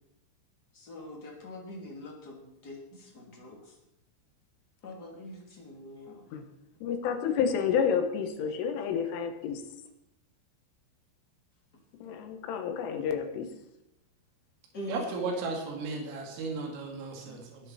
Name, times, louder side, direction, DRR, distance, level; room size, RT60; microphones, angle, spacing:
voice 1, 0.7-3.7 4.8-6.3 14.7-15.4 17.3-17.4, left 1 dB, 25° left, -1 dB, 2.6 m, -43 dB
voice 2, 6.8-9.6 12.0-13.5, left 7 dB, 75° left, 6 dB, 3.8 m, -30 dB
voice 3, 14.9-17.6, right 3 dB, 85° right, 1 dB, 5.1 m, -35 dB
21.0 x 10.5 x 4.4 m, 0.86 s
omnidirectional pair, 5.8 m